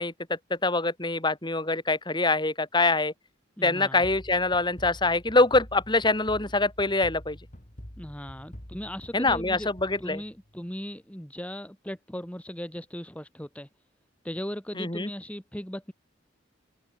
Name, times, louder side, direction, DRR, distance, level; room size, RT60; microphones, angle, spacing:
voice 1, 0.0-3.1 3.6-7.4 9.1-10.2 14.7-15.1, left 2 dB, 25° left, 3.2 m, -25 dB
voice 2, 3.6-4.0 8.0-9.7 10.0-13.7 14.2-15.9, equal, 5° left, 1.8 m, -38 dB
sound 1, 4.0-10.7, equal, 40° left, 3.9 m, -45 dB
open air
head